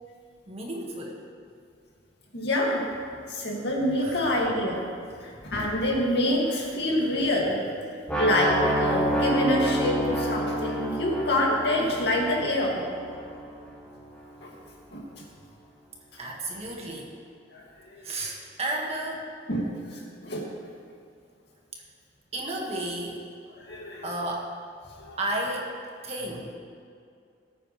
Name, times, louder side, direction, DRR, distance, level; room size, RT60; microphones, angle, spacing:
voice 1, 0.5-1.2 4.0-4.2 16.2-17.1 18.0-19.3 21.7-21.8 22.3-23.3 24.0-24.5 25.2-25.7 26.0-26.5, right 1 dB, 35° right, -1 dB, 1.8 m, -32 dB
voice 2, 2.3-2.8 3.3-4.8 5.4-7.7 8.1-12.8 14.4-14.5 14.9-15.0 17.5-17.6 19.5-19.6 20.2-20.5 23.7-24.1 25.0-25.1, left 1 dB, 65° left, -3 dB, 2.3 m, -26 dB
sound 1, 8.1-14.0, right 1 dB, 5° left, 1.8 m, -28 dB
19.5 x 8.6 x 3.3 m, 2.3 s
head